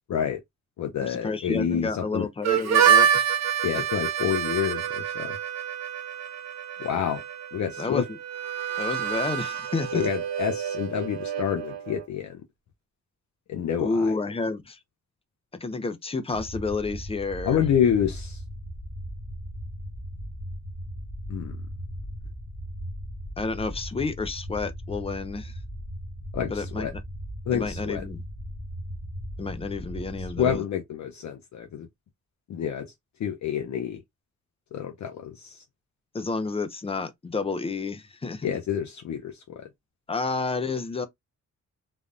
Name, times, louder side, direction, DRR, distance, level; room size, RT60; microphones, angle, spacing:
voice 1, 0.1-0.4 0.8-2.3 3.6-5.4 6.8-7.2 7.5-8.0 9.9-12.4 13.5-14.1 17.4-18.4 21.3-21.6 26.3-26.9 27.5-28.0 30.4-31.9 32.5-32.9 33.2-34.0 34.7-35.6 38.4-39.4, left 8 dB, 70° left, 0.6 m, -28 dB
voice 2, 1.0-3.3 3.7-3.8 7.8-8.2 8.8-10.1 13.8-14.8 15.6-17.6 23.4-25.6 26.5-27.0 27.5-28.2 29.4-30.6 36.1-38.5 40.1-41.1, left 3 dB, 20° left, 0.4 m, -30 dB
Harmonica, 2.4-12.1, right 8 dB, 60° right, 0.6 m, -27 dB
sound 1, 16.3-30.6, equal, 45° left, 1.0 m, -37 dB
3.4 x 2.1 x 2.5 m
wide cardioid pair, 130°, 30 cm